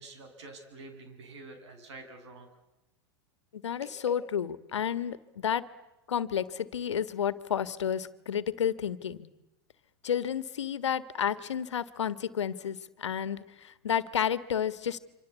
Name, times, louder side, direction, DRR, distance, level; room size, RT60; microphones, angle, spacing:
voice 1, 0.0-2.5 3.8-3.9, right 3 dB, 75° right, 7 dB, 7.5 m, -47 dB
voice 2, 3.5-5.6 6.1-9.3 10.0-15.0, left 8 dB, 90° left, 14 dB, 1.6 m, -31 dB
27.0 x 26.0 x 8.3 m, 0.97 s
hypercardioid pair, 105°, 15 cm